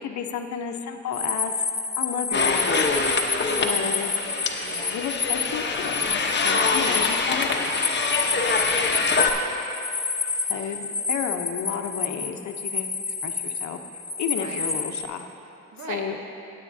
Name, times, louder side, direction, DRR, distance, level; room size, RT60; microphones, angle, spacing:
voice 1, 0.0-1.5 2.0-2.9 3.6-4.1 4.9-7.7 10.5-13.8 14.2-15.3 15.8-16.2, left 7 dB, 65° left, 6 dB, 0.8 m, -32 dB
sound 1, 1.1-5.5 5.7-15.0, left 4 dB, 10° left, 0.6 m, -29 dB
sound 2, 2.3-9.3, left 4 dB, 35° left, 0.9 m, -25 dB
voice 2, 3.4-4.2 4.6-5.0 6.4-6.8 8.2-9.2 10.4-10.8 14.4-14.6 15.7-16.3, right 3 dB, 75° right, 1 dB, 1.4 m, -39 dB
18.5 x 8.5 x 2.7 m, 2.9 s
cardioid pair, 90°, 30 cm